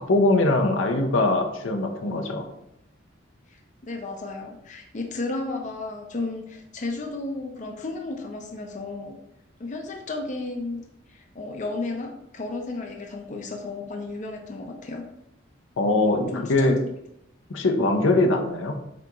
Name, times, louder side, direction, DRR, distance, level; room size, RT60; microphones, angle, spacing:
voice 1, 0.0-2.5 15.8-16.8 17.5-18.7, left 2 dB, 80° left, 3 dB, 0.6 m, -22 dB
voice 2, 3.8-9.2 9.6-15.1 16.3-16.8, left 2 dB, 40° left, 2 dB, 0.5 m, -33 dB
7.4 x 2.9 x 2.4 m, 0.79 s
head